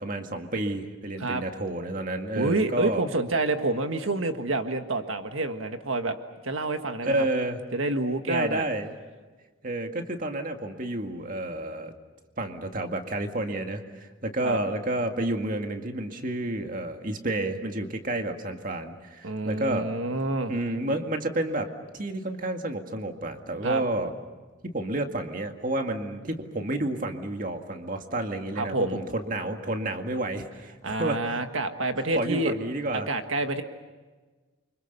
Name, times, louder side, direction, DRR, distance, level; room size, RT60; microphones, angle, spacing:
voice 1, 0.0-3.0 7.0-7.6 8.3-8.9 9.6-11.9 12.4-19.9 20.5-24.1 24.7-31.4 32.1-33.1, right 1 dB, 40° right, 5 dB, 2.0 m, -30 dB
voice 2, 2.3-6.2 6.4-7.2 7.7-8.6 14.4-14.6 19.2-20.5 23.6-23.8 28.6-29.0 30.8-32.6 32.9-33.6, right 2 dB, 85° right, 7 dB, 1.6 m, -28 dB
29.0 x 25.5 x 6.8 m, 1.3 s
head